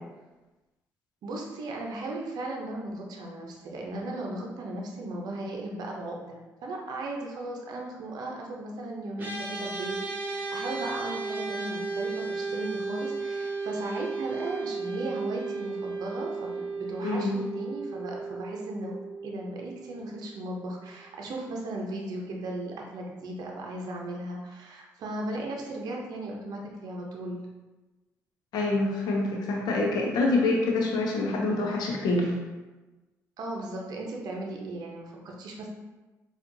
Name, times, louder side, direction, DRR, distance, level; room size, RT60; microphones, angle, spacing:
voice 1, 1.2-10.0 10.2-18.9 19.2-27.4 33.4-35.7, right 2 dB, 70° right, 0 dB, 0.6 m, -36 dB
sound 1, 9.2-20.6, right 4 dB, 25° right, 1.3 m, -35 dB
voice 2, 17.0-17.4 28.5-32.4, left 2 dB, 75° left, -1 dB, 0.7 m, -26 dB
4.3 x 2.4 x 2.7 m, 1.2 s
supercardioid pair, 55°, 7 cm